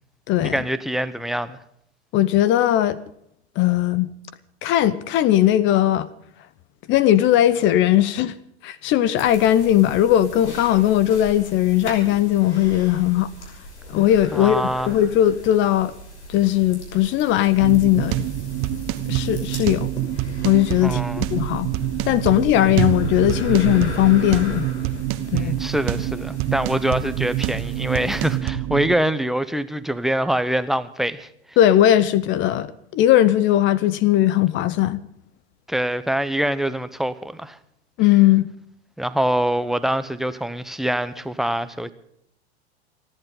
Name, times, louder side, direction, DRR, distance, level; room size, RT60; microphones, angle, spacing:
voice 1, 0.5-1.6 14.3-15.0 20.8-21.2 22.5-22.9 25.3-31.3 35.7-37.6 39.0-41.9, right 1 dB, ahead, 0.9 m, -24 dB
voice 2, 2.1-3.0 3.6-4.1 4.6-6.1 6.9-8.3 8.6-13.3 13.9-15.9 16.3-18.2 19.1-19.9 20.4-21.7 22.1-24.7 25.3-25.5 31.6-35.0 38.0-38.5, left 12 dB, 35° left, 0.9 m, -18 dB
sound 1, 9.2-28.4, left 1 dB, 75° left, 6.1 m, -38 dB
sound 2, 17.6-29.0, right 13 dB, 40° right, 1.3 m, -26 dB
29.0 x 11.0 x 3.9 m
figure-of-eight pair, 95°, 34 cm